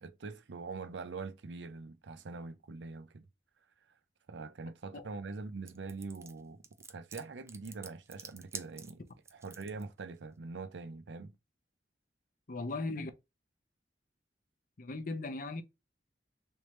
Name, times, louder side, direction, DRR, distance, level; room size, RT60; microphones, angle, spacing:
voice 1, 0.0-3.3 4.3-6.6 6.9-9.0 9.3-11.4, right 4 dB, 90° right, 0.5 m, -43 dB
sound 1, 5.7-9.8, right 5 dB, 15° right, 0.4 m, -48 dB
voice 2, 12.5-13.1 14.8-15.6, left 2 dB, 50° left, 0.6 m, -37 dB
3.4 x 3.2 x 2.8 m
head